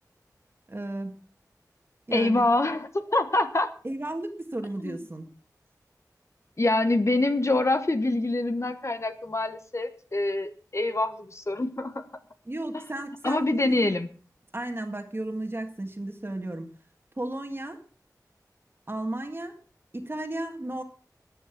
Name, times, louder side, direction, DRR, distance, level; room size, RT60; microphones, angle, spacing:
voice 1, 0.7-1.1 2.1-2.5 3.8-5.3 12.5-13.8 14.5-16.7 17.2-17.8 18.9-19.6 19.9-20.8, right 1 dB, 35° right, 4 dB, 1.7 m, -34 dB
voice 2, 2.1-3.7 4.8-5.0 6.6-12.0 12.7-12.8 13.2-14.1, left 2 dB, 45° left, 9 dB, 1.2 m, -25 dB
14.0 x 9.0 x 5.9 m, 0.42 s
wide cardioid pair, 60°, 7 cm